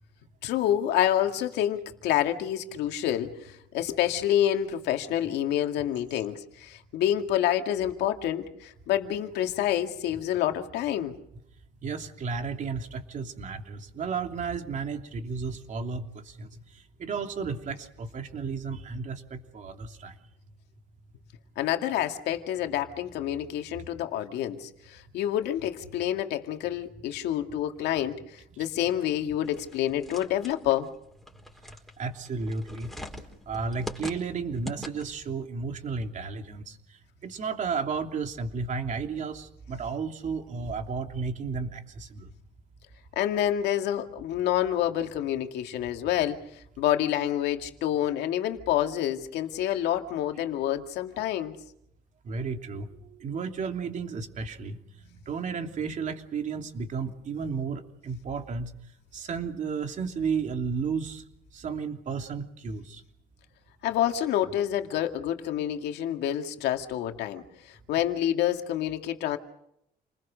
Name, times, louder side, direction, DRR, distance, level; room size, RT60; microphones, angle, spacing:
voice 1, 0.4-11.2 21.6-30.9 43.2-46.4 46.8-51.6 63.8-69.4, left 11 dB, 85° left, 5 dB, 2.2 m, -28 dB
voice 2, 11.8-16.0 16.4-16.6 17.0-20.1 32.0-32.9 33.5-36.8 37.2-42.3 52.2-54.8 55.3-58.7 59.1-61.2 61.5-63.0, right 5 dB, 50° right, 4 dB, 3.1 m, -33 dB
sound 1, 29.4-35.3, left 1 dB, ahead, 4.5 m, -43 dB
29.5 x 20.5 x 6.5 m, 0.76 s
cardioid pair, 110°, 17 cm